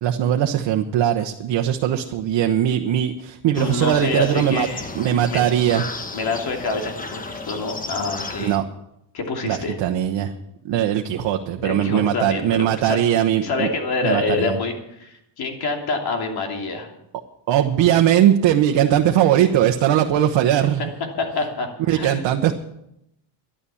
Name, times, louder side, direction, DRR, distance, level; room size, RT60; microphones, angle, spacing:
voice 1, 0.0-4.7 4.9-5.8 8.4-8.6 9.4-10.3 10.6-13.7 14.0-14.5 17.5-20.9 21.9-22.5, right 11 dB, 75° right, 4 dB, 1.1 m, -20 dB
sound 1, 3.5-8.6, left 3 dB, 20° left, 1.1 m, -34 dB
voice 2, 3.6-4.9 5.3-5.4 6.1-8.5 9.1-9.8 11.6-13.0 13.4-16.9 21.2-22.3, left 3 dB, 55° left, 2 dB, 3.0 m, -26 dB
12.5 x 11.5 x 7.0 m, 0.80 s
cardioid pair, 145°, 44 cm